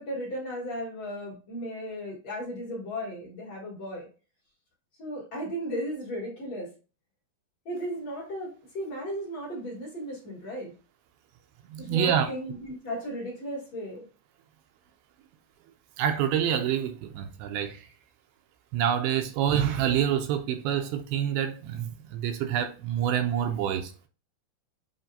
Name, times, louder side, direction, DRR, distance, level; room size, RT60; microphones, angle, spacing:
voice 1, 0.0-4.1 5.0-6.7 7.7-10.7 11.8-14.1, equal, 55° left, 2.1 m, -35 dB
voice 2, 11.7-12.3 16.0-17.9 18.7-24.1, right 9 dB, 80° right, 2.3 m, -27 dB
7.5 x 2.6 x 2.7 m
omnidirectional pair, 4.5 m